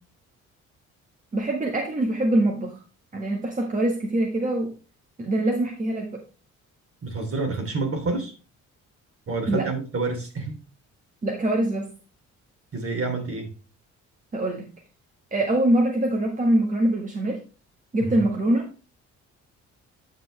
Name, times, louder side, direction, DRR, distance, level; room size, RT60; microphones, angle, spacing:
voice 1, 1.3-2.8 3.1-4.7 5.2-6.2 9.5-9.7 11.2-11.9 14.3-14.6 15.3-17.4 17.9-18.6, right 1 dB, 25° right, 1 dB, 1.6 m, -23 dB
voice 2, 7.0-8.3 9.3-10.6 12.7-13.5 18.0-18.2, right 3 dB, 50° right, 3 dB, 3.0 m, -28 dB
9.3 x 5.9 x 3.3 m, 0.33 s
cardioid pair, 90°, 30 cm